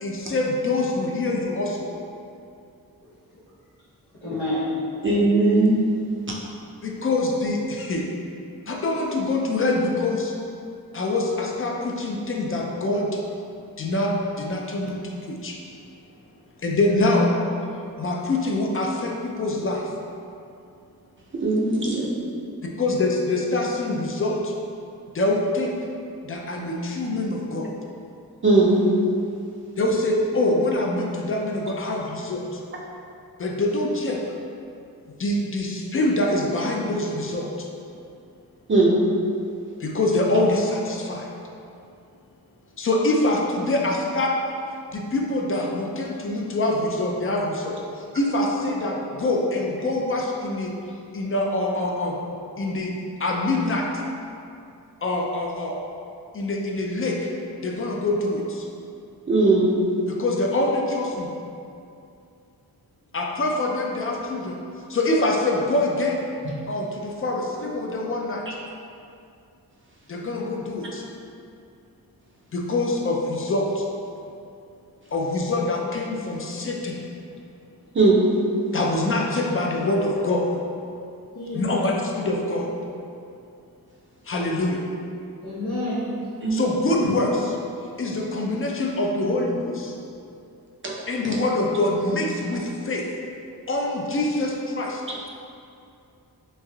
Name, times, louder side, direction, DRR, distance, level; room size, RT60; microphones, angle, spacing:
voice 1, 0.0-1.9 6.8-8.0 8.7-10.3 10.9-13.1 13.8-15.0 15.3-15.6 16.6-17.4 18.0-19.8 22.8-24.5 25.1-25.7 26.3-27.7 29.8-32.4 33.4-34.2 35.2-37.5 39.8-41.3 42.8-44.4 44.9-47.8 48.1-50.7 51.1-52.2 52.6-52.9 53.2-53.9 55.0-55.8 56.3-57.2 57.6-58.6 60.1-61.3 63.1-64.6 64.9-66.2 66.7-68.4 70.1-71.0 72.5-73.8 75.1-77.0 78.7-80.5 81.5-82.7 84.3-84.8 86.5-87.5 88.0-89.9 91.1-93.0 93.7-95.0, left 2 dB, 35° left, 0 dB, 0.4 m, -24 dB
voice 2, 4.2-4.7 81.3-81.9 85.4-86.1 93.8-93.9, left 1 dB, 80° left, -15 dB, 0.9 m, -28 dB
voice 3, 5.0-5.9 21.3-22.1 28.4-28.8 38.7-39.0 59.3-59.7 77.9-78.3 86.4-86.6 90.8-90.9 91.2-91.4, right 2 dB, 30° right, -4 dB, 0.5 m, -19 dB
3.2 x 2.5 x 2.3 m, 2.5 s
cardioid pair, 45°, 38 cm